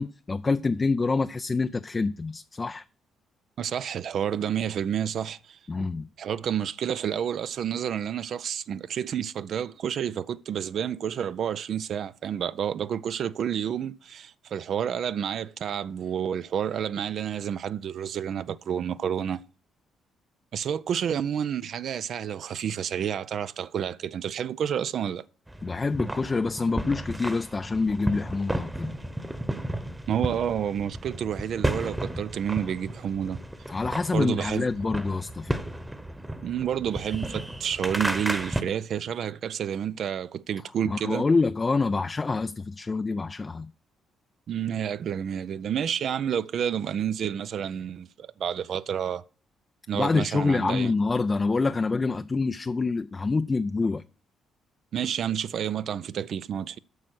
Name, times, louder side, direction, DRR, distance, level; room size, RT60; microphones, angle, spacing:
voice 1, 0.0-2.8 5.7-6.1 25.6-28.9 33.7-35.6 40.9-43.7 50.0-54.0, left 3 dB, 30° left, 0.4 m, -26 dB
voice 2, 3.6-5.9 6.2-19.4 20.5-25.3 30.1-33.4 34.1-34.7 36.4-41.3 44.5-49.2 49.9-50.9 54.9-56.8, right 9 dB, 60° right, 0.4 m, -30 dB
sound 1, 25.5-38.6, right 1 dB, 10° right, 1.1 m, -33 dB
9.4 x 6.3 x 6.0 m
hypercardioid pair, 45°, 0 cm